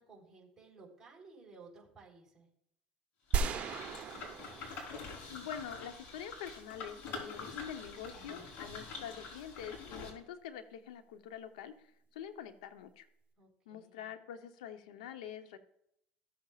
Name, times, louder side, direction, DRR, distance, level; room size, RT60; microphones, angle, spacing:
voice 1, 0.0-2.5 13.4-14.1, right 4 dB, 15° right, -5 dB, 3.8 m, -57 dB
sound 1, 3.3-10.1, left 4 dB, 55° left, 3.8 m, -46 dB
sound 2, 3.3-5.6, right 6 dB, 40° right, 0.9 m, -36 dB
voice 2, 5.3-13.1 13.7-15.6, left 9 dB, 90° left, 9 dB, 0.9 m, -46 dB
14.5 x 7.1 x 2.4 m, 0.74 s
supercardioid pair, 100°, 4 cm